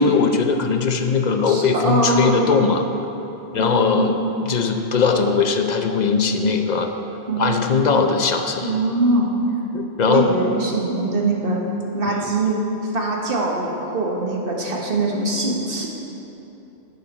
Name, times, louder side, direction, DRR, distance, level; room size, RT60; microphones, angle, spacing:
voice 1, 0.0-2.9 3.5-6.9 7.4-8.8 9.7-10.3, left 5 dB, 45° left, 5 dB, 0.8 m, -20 dB
voice 2, 1.5-2.4 3.5-4.1 7.3-7.7 8.6-9.3 10.0-11.6 11.9-12.6 12.9-15.9, right 2 dB, 60° right, -2 dB, 1.5 m, -22 dB
11.5 x 8.4 x 4.2 m, 3.0 s
omnidirectional pair, 1.1 m